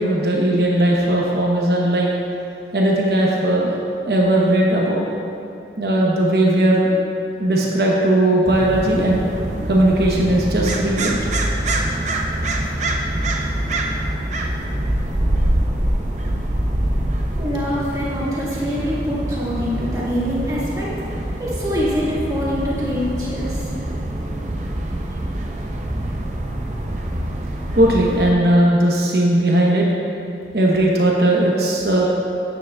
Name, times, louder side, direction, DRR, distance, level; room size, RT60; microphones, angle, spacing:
voice 1, 0.0-2.1 2.7-3.7 4.0-5.0 5.8-6.9 7.4-9.2 9.7-11.2 27.7-29.9 30.5-32.0, right 1 dB, 65° right, -3 dB, 1.0 m, -17 dB
sound 1, 8.4-28.3, right 1 dB, 40° right, 0.6 m, -25 dB
voice 2, 17.3-20.9 21.4-23.6, equal, 20° right, -8 dB, 1.8 m, -24 dB
9.6 x 9.3 x 2.4 m, 2.5 s
head